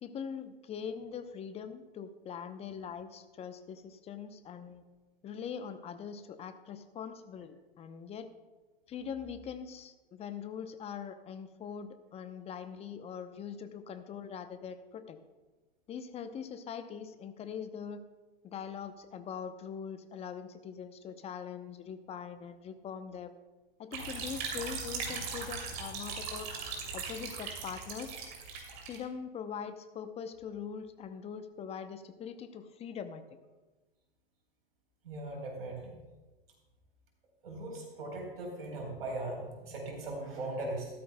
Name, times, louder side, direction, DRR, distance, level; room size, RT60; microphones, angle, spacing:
voice 1, 0.0-4.8 5.2-8.3 8.9-15.2 15.9-18.0 18.4-23.4 23.8-26.5 26.9-28.2 28.9-33.2, left 7 dB, 20° left, 10 dB, 0.7 m, -42 dB
sound 1, 23.9-29.0, right 5 dB, 45° right, 3.0 m, -39 dB
voice 2, 35.0-36.0 37.4-40.9, right 2 dB, 70° right, 1 dB, 4.1 m, -39 dB
15.0 x 13.0 x 2.2 m, 1.2 s
figure-of-eight pair, 105°, 31 cm